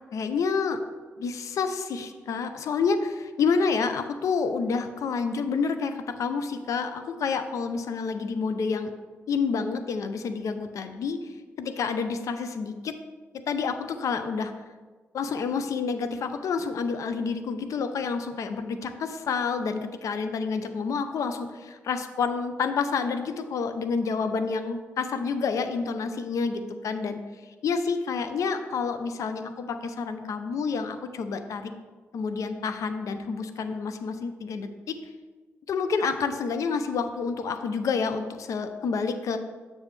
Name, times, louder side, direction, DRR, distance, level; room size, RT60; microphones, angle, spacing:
voice 1, 0.1-0.8 1.2-8.9 9.3-11.2 11.6-13.0 13.5-14.5 15.1-27.2 27.6-31.7 32.1-35.0 35.7-39.4, left 5 dB, 70° left, 9 dB, 0.6 m, -29 dB
7.4 x 6.2 x 3.2 m, 1.4 s
supercardioid pair, 50°, 6 cm